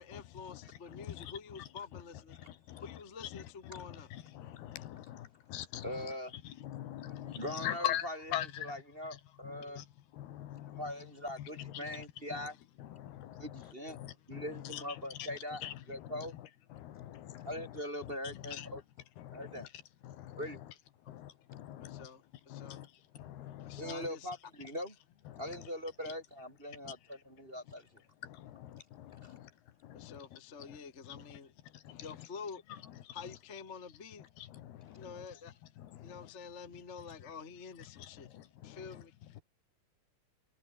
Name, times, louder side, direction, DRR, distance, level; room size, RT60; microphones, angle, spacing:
voice 1, 0.0-2.4 2.8-4.1 21.8-22.8 23.6-24.3 26.0-26.1 29.9-31.5 32.0-32.6 33.1-34.2 35.0-35.5 36.0-38.3 38.6-39.1, left 5 dB, 25° left, 1.5 m, -48 dB
voice 2, 0.9-1.3 2.4-3.0 3.3-3.4 3.7-6.1 6.5-8.7 9.4-9.9 10.1-10.9 11.4-12.1 12.3-12.5 12.8-15.3 15.6-16.1 16.7-17.7 18.0-18.8 19.2-19.7 20.0-20.5 21.1-22.1 22.5-22.9 23.2-23.9 25.3-25.7 26.9-27.0 28.2-29.5 29.8-30.2 30.7-30.8 31.1-31.2 31.7-32.1 33.1-33.2 34.4-35.3 35.8-36.3 38.0-39.0, left 12 dB, 80° left, 3.5 m, -43 dB
voice 3, 5.8-6.3 6.9-9.8 10.3-10.4 10.7-12.6 13.4-14.0 14.3-15.6 15.9-16.3 17.4-18.8 19.3-19.7 20.4-20.6 23.8-24.9 25.4-28.0 29.2-29.3, left 1 dB, 15° right, 2.7 m, -42 dB
omnidirectional pair, 4.6 m